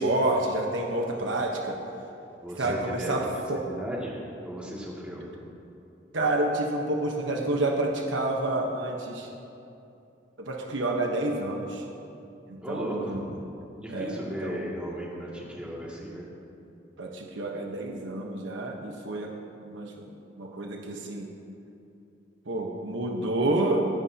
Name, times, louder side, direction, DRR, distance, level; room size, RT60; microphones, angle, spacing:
voice 1, 0.0-1.8 2.6-3.6 6.1-9.3 10.4-11.8 12.5-13.3 13.9-14.6 17.0-19.3 19.6-21.3 22.5-23.9, right 2 dB, 80° right, 0 dB, 1.2 m, -29 dB
voice 2, 2.4-4.2 4.4-5.3 12.6-13.2 13.8-16.2, equal, 5° right, -5 dB, 2.3 m, -36 dB
23.0 x 11.0 x 2.9 m, 2.7 s
head